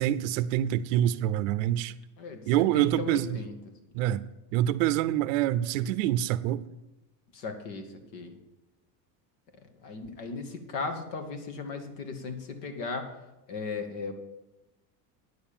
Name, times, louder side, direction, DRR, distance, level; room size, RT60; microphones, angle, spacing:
voice 1, 0.0-1.9 2.5-3.4 3.9-4.2 4.5-6.7, right 12 dB, 50° right, 0.6 m, -26 dB
voice 2, 2.7-3.6 7.3-7.9 8.1-8.4 9.8-13.1 13.5-14.1, left 4 dB, 75° left, 2.2 m, -36 dB
9.4 x 7.3 x 8.8 m
supercardioid pair, 160°, 49 cm